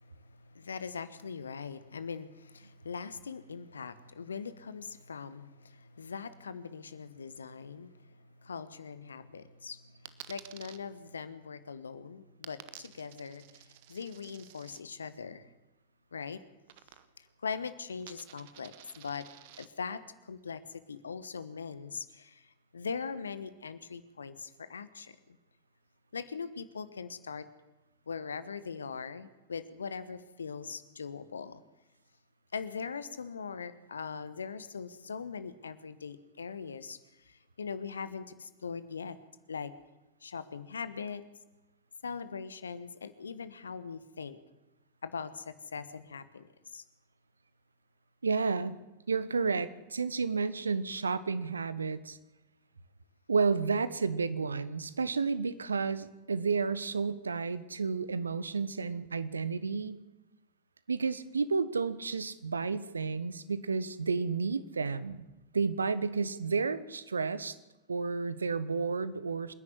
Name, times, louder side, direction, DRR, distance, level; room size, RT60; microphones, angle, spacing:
voice 1, 0.0-15.5 16.1-16.4 17.2-19.3 19.6-25.4 26.1-27.5 28.1-31.6 32.5-37.0 37.2-39.2 39.5-39.7 40.2-41.2 42.0-44.4 45.0-46.8, left 5 dB, 70° left, 14 dB, 1.3 m, -41 dB
Coin (dropping), 10.1-10.8 12.4-14.8 16.7-17.3 17.6-19.7, right 14 dB, 50° right, 1.2 m, -52 dB
voice 2, 48.2-48.8 49.1-52.2 53.3-60.0 60.9-65.2 65.5-67.6 67.9-69.5, right 4 dB, 75° right, 16 dB, 1.2 m, -31 dB
27.0 x 11.0 x 9.7 m, 1.0 s
figure-of-eight pair, 90°, 0 cm